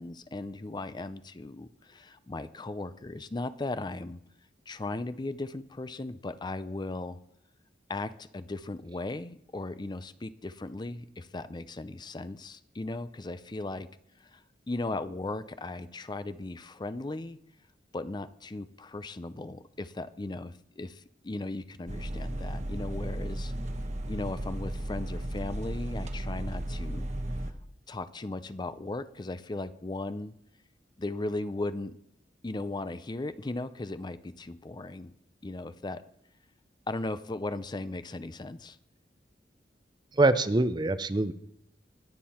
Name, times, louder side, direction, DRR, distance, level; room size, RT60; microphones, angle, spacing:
voice 1, 0.0-4.2 4.7-7.2 7.9-13.9 14.2-17.4 17.9-23.5 24.1-27.1 27.9-30.3 31.0-31.9 32.4-35.1 35.4-36.0 36.9-38.8, left 2 dB, 25° left, 13 dB, 0.5 m, -37 dB
sound 1, 21.9-27.5, right 1 dB, 40° right, 1.1 m, -34 dB
voice 2, 40.1-41.3, right 2 dB, 25° right, 13 dB, 0.6 m, -24 dB
21.0 x 7.6 x 4.3 m, 0.72 s
head